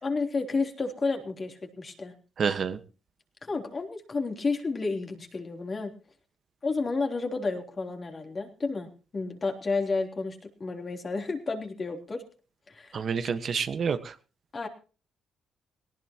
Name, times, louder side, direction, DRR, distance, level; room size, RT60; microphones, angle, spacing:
voice 1, 0.0-2.1 3.4-5.9 6.6-12.2 12.7-13.0 14.5-14.7, left 3 dB, 35° left, 4 dB, 3.5 m, -31 dB
voice 2, 2.4-2.8 12.9-14.1, right 6 dB, 50° right, 9 dB, 1.4 m, -28 dB
19.0 x 18.0 x 3.0 m, 0.37 s
cardioid pair, 90°, 0 cm